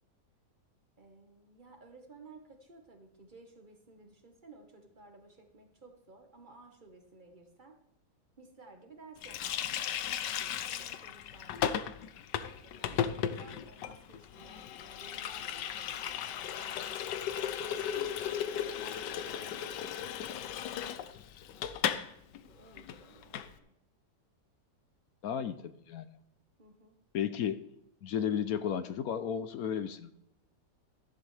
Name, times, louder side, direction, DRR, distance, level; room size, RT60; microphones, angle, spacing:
voice 1, 1.0-7.8 8.4-12.0 12.6-20.0 22.2-23.7 26.6-26.9, right 3 dB, 30° right, 3 dB, 1.4 m, -56 dB
Water tap faucet, 9.2-22.1 22.3-22.5 22.8-23.5, left 9 dB, 90° left, 1.3 m, -36 dB
voice 2, 25.2-26.1 27.1-27.7 28.0-30.1, left 8 dB, 70° left, 12 dB, 1.1 m, -33 dB
14.0 x 11.0 x 3.3 m, 0.78 s
omnidirectional pair, 1.8 m